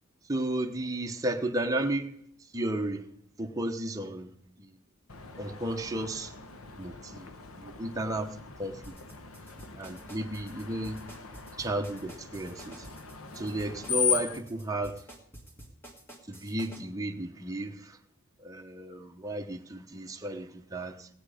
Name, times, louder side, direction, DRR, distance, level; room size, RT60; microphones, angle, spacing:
voice 1, 0.2-2.1 2.4-3.1 3.4-4.8 5.4-6.3 6.8-7.3 7.6-9.0 9.8-11.0 11.6-12.9 13.3-15.0 16.3-18.0 18.4-21.1, right 1 dB, 15° right, 0.9 m, -33 dB
Screech, 5.1-14.4, left 7 dB, 75° left, 1.1 m, -37 dB
sound 1, 8.8-16.8, right 1 dB, 10° left, 1.7 m, -50 dB
17.5 x 8.4 x 5.0 m
head